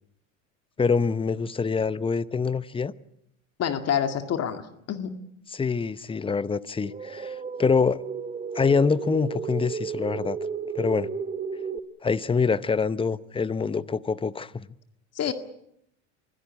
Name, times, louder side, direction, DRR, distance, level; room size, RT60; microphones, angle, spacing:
voice 1, 0.8-2.9 5.5-8.0 8.5-10.4 10.7-11.1 12.0-14.6, left 5 dB, 15° left, 0.8 m, -25 dB
voice 2, 3.6-4.6 4.9-5.1 15.2-15.3, left 8 dB, 40° left, 2.0 m, -26 dB
sound 1, 6.8-11.8, right 6 dB, 20° right, 1.4 m, -33 dB
24.5 x 16.5 x 8.7 m
hypercardioid pair, 90°, 38 cm